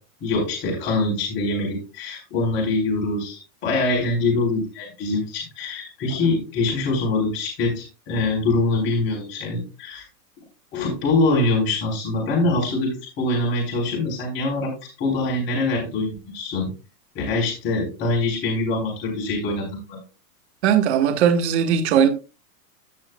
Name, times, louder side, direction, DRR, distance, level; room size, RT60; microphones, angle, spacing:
voice 1, 0.2-10.0 10.7-14.7 15.0-16.7 17.1-20.0, left 2 dB, 25° left, 3.8 m, -24 dB
voice 2, 20.6-22.1, right 8 dB, 40° right, 1.6 m, -18 dB
16.0 x 5.7 x 2.2 m
supercardioid pair, 165°, 49 cm